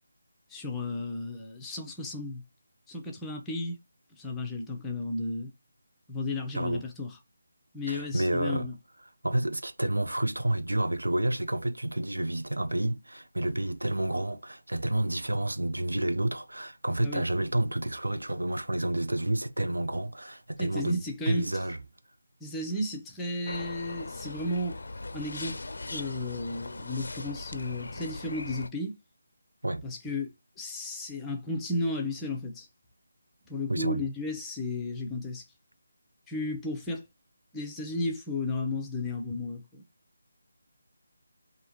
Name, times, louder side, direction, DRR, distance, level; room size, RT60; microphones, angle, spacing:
voice 1, 0.5-2.4 2.9-3.8 4.1-5.5 6.1-7.2 7.7-8.7 17.0-17.2 20.6-21.6 22.4-24.8 25.1-25.6 25.9-29.0 29.8-32.7 33.5-35.4 36.3-37.0 37.5-39.8, left 2 dB, 10° left, 0.7 m, -34 dB
voice 2, 7.9-8.7 9.2-21.8 29.6-29.9 33.7-34.0, right 1 dB, 90° right, 0.6 m, -29 dB
sound 1, 23.5-28.7, left 2 dB, 65° left, 0.4 m, -40 dB
4.7 x 2.8 x 2.9 m
figure-of-eight pair, 160°, 0 cm